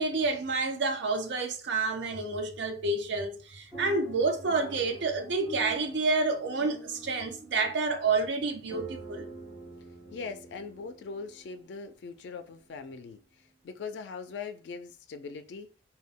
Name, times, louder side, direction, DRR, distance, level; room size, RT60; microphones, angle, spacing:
voice 1, 0.0-9.3, right 3 dB, 80° right, 0.5 m, -29 dB
sound 1, 3.7-11.8 12.4-12.5 12.8-13.0, right 2 dB, 20° right, 0.7 m, -47 dB
voice 2, 10.1-13.2 13.6-15.7, left 5 dB, 80° left, 0.3 m, -41 dB
2.2 x 2.1 x 3.5 m
head